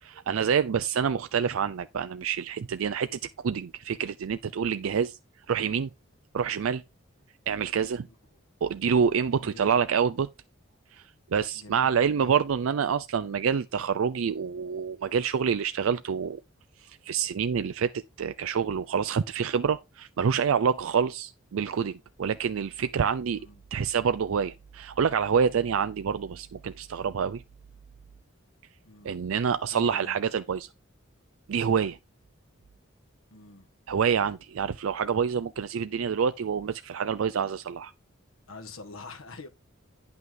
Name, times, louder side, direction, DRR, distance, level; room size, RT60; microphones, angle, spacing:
voice 1, 0.0-5.2 5.5-5.9 6.3-6.8 7.5-8.1 8.6-10.3 10.9-16.4 16.8-23.4 23.7-27.4 29.0-30.7 31.5-32.0 33.9-37.9, right 7 dB, 85° right, 0.4 m, -27 dB
voice 2, 8.1-8.4 9.4-9.8 11.5-12.4 23.4-23.6 28.8-29.2 29.7-30.2 33.3-33.7 38.5-39.5, left 3 dB, 90° left, 1.5 m, -46 dB
9.2 x 5.9 x 3.9 m
head